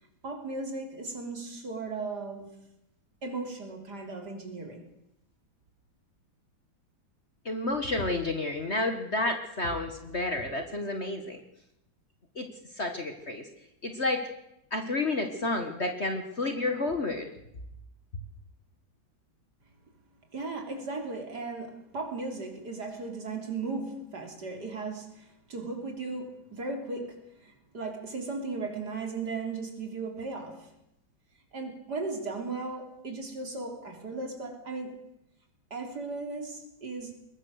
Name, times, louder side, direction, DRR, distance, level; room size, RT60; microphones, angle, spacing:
voice 1, 0.2-2.5 3.2-4.9 20.3-30.7 31.5-35.0 35.7-37.1, right 3 dB, 55° right, 4 dB, 3.8 m, -36 dB
voice 2, 7.4-11.4 12.3-12.5 12.8-13.4 13.8-14.2 14.7-17.3, left 2 dB, 35° left, 6 dB, 1.7 m, -30 dB
22.0 x 19.5 x 6.5 m, 0.81 s
omnidirectional pair, 2.2 m